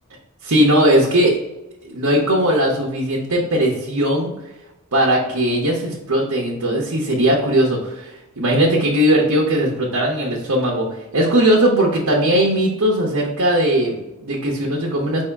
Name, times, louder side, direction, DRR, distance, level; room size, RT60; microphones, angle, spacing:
voice 1, 0.4-1.4 1.8-4.3 4.9-15.2, right 1 dB, 80° right, -3 dB, 0.9 m, -18 dB
4.9 x 2.8 x 3.4 m, 0.97 s
head